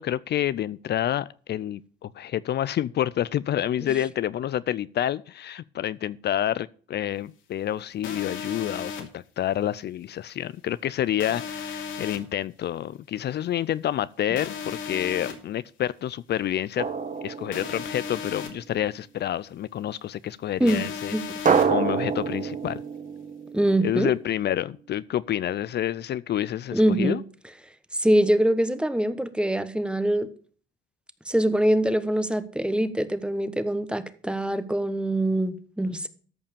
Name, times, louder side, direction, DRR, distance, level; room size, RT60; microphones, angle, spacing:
voice 1, 0.0-16.9 17.2-21.1 21.7-22.8 23.8-27.2, left 11 dB, 60° left, 0.5 m, -28 dB
sound 1, 8.0-9.0 11.2-12.2 14.4-15.3 17.5-18.5 20.7-21.7, left 6 dB, 75° left, 2.8 m, -35 dB
Drum, 16.8-18.3 21.5-24.2, right 6 dB, 40° right, 1.2 m, -27 dB
voice 2, 20.6-21.4 23.5-24.1 26.7-27.2 27.9-30.3 31.3-36.1, right 1 dB, 5° right, 1.1 m, -24 dB
13.5 x 5.5 x 6.9 m
cardioid pair, 90°, 20 cm